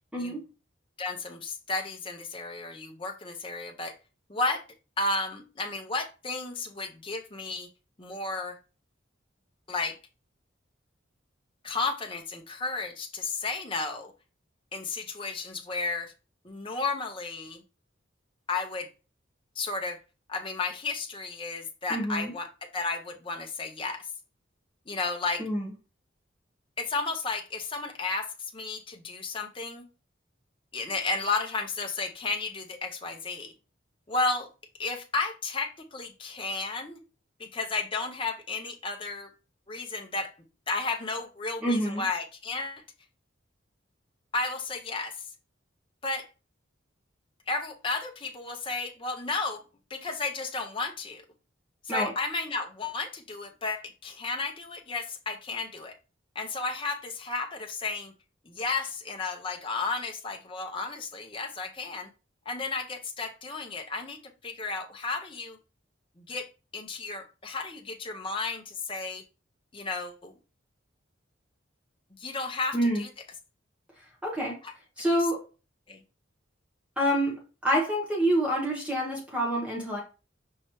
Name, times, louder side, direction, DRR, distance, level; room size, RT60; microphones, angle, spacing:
voice 1, 1.0-3.9 4.3-4.6 5.0-7.7 8.0-8.6 9.7-10.0 11.6-14.1 14.7-16.1 16.4-17.6 18.5-18.9 19.6-20.0 20.3-24.1 24.9-25.4 26.8-29.8 30.7-33.5 34.1-34.5 34.8-37.0 37.4-39.3 39.7-40.3 40.7-42.8 44.3-45.3 46.0-46.3 47.5-49.6 49.9-51.2 51.8-55.9 56.3-58.1 58.4-62.1 62.5-65.6 66.2-66.5 66.7-69.2 69.7-70.3 72.2-73.1 74.6-74.7 75.0-75.2 75.9-76.0, left 3 dB, 25° left, 3 dB, 0.6 m, -33 dB
voice 2, 21.9-22.3 25.4-25.7 41.6-42.0 51.9-52.1 72.7-73.0 74.2-74.6 75.0-75.4 77.0-80.0, equal, 5° right, -3 dB, 1.0 m, -27 dB
5.5 x 3.1 x 3.0 m, 0.32 s
head